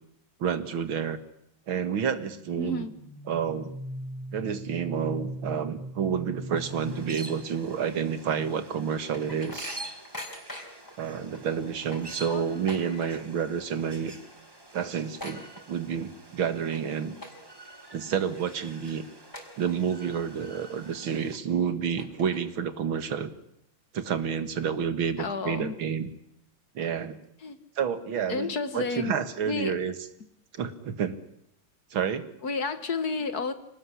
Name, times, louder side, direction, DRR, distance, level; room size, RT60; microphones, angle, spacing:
voice 1, 0.4-1.2 1.7-2.9 3.3-3.7 4.3-9.8 11.0-14.2 14.7-17.2 17.9-19.0 19.6-23.3 23.9-26.1 26.7-27.2 27.8-29.9 30.5-31.2 31.9-32.3, right 7 dB, 80° right, 12 dB, 2.5 m, -29 dB
sound 1, 2.4-7.9, right 1 dB, 65° right, 3.5 m, -39 dB
voice 2, 2.6-3.0 12.3-12.6 25.2-25.7 27.4-27.6 28.3-29.2 29.5-29.7 32.4-33.5, left 4 dB, 50° left, 12 dB, 1.9 m, -31 dB
sound 2, 6.6-21.4, right 2 dB, 10° right, 1.6 m, -48 dB
sound 3, 8.5-10.9 11.3-11.4 11.7-13.4 13.7-14.1 14.4-14.5 14.7-16.1 16.5-16.8 17.2-17.7 18.2-18.3 18.9-19.0 19.3-20.1 20.5-20.6 21.3-21.4 21.8-22.7, left 1 dB, 10° left, 4.9 m, -42 dB
26.5 x 19.0 x 9.9 m, 0.75 s
omnidirectional pair, 2.2 m